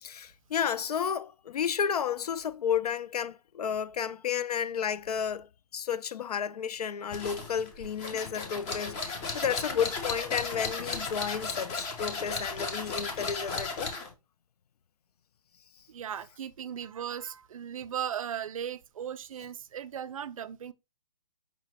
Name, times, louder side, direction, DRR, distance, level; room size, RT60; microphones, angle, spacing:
voice 1, 0.0-5.5 5.7-13.9, left 8 dB, 80° left, 0.4 m, -32 dB
sound 1, 7.1-14.1, left 4 dB, 20° left, 0.7 m, -35 dB
voice 2, 15.9-20.7, right 9 dB, 60° right, 0.4 m, -37 dB
5.0 x 2.9 x 2.8 m
hypercardioid pair, 150°, 20 cm